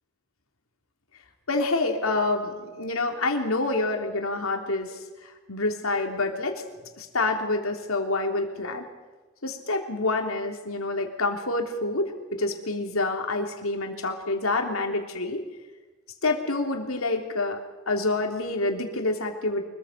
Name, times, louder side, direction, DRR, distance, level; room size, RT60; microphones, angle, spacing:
voice 1, 1.5-6.6 7.0-8.9 9.4-15.4 16.2-17.6 17.9-19.6, left 2 dB, 75° left, 3 dB, 3.2 m, -27 dB
24.0 x 22.5 x 5.7 m, 1.3 s
head